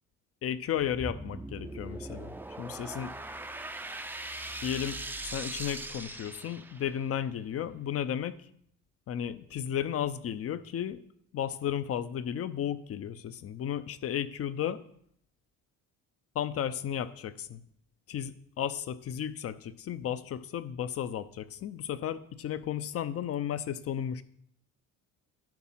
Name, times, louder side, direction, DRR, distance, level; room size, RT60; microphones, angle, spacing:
voice 1, 0.4-3.1 4.6-8.4 9.1-11.0 11.3-14.8 16.3-17.6 18.1-24.2, left 9 dB, 45° left, 14 dB, 0.7 m, -34 dB
sound 1, 0.8-7.1, right 2 dB, 5° right, 0.5 m, -40 dB
10.5 x 5.0 x 5.7 m, 0.66 s
cardioid pair, 100°, 33 cm